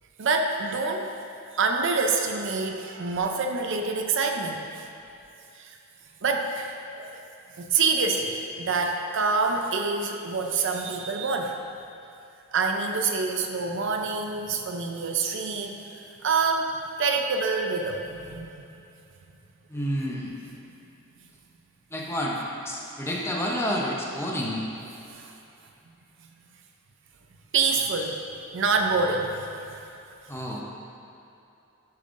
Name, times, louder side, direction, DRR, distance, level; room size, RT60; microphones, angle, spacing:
voice 1, 0.2-1.1 1.5-4.9 5.6-5.8 6.2-7.2 7.6-11.6 12.5-15.8 16.2-18.5 25.1-25.3 27.5-28.2 28.5-29.8, right 4 dB, 65° right, 3 dB, 0.5 m, -26 dB
voice 2, 19.7-20.4 21.9-22.4 22.6-24.7 30.3-30.6, equal, 10° left, -3 dB, 0.7 m, -29 dB
10.5 x 5.4 x 2.6 m, 2.8 s
head